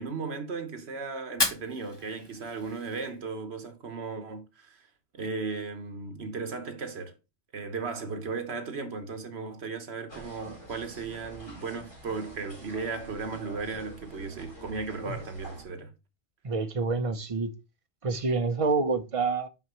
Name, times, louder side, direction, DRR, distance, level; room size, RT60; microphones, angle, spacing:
voice 1, 0.0-4.8 5.1-7.2 7.5-15.9, right 4 dB, 75° right, 1.4 m, -36 dB
Fire, 1.2-3.3, left 2 dB, 25° left, 1.1 m, -33 dB
sound 1, 10.1-15.7, right 1 dB, 60° left, 4.0 m, -46 dB
voice 2, 16.4-17.5 18.0-19.5, right 4 dB, 35° right, 0.7 m, -27 dB
5.8 x 5.7 x 3.0 m
omnidirectional pair, 1.1 m